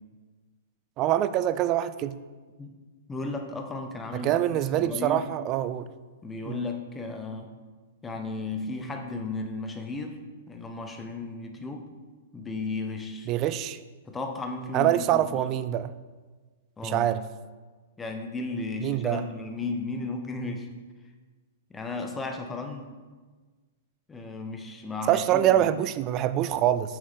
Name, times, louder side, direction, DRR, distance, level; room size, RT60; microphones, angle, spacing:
voice 1, 1.0-2.2 4.1-5.9 6.5-6.7 13.3-13.8 14.7-15.9 16.8-17.2 18.8-19.2 25.1-27.0, right 12 dB, 35° right, 14 dB, 0.4 m, -25 dB
voice 2, 3.1-5.3 6.2-7.5 8.0-10.2 10.5-11.8 12.3-13.3 14.0-15.2 16.8-17.1 18.0-20.7 21.7-22.9 24.1-25.7, left 3 dB, 15° left, 4 dB, 0.9 m, -34 dB
7.4 x 6.3 x 3.5 m, 1.4 s
hypercardioid pair, 115°, 0 cm